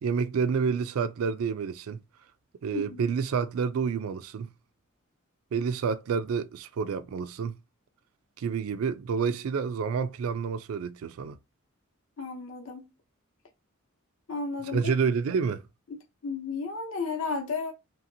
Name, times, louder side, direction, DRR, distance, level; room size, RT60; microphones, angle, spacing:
voice 1, 0.0-2.0 2.6-4.5 5.5-7.6 8.4-11.4 14.7-15.6, right 6 dB, 80° right, 0.4 m, -29 dB
voice 2, 2.7-3.1 12.2-12.9 14.3-14.9 15.9-17.7, left 4 dB, 70° left, 0.7 m, -33 dB
2.8 x 2.8 x 2.6 m
head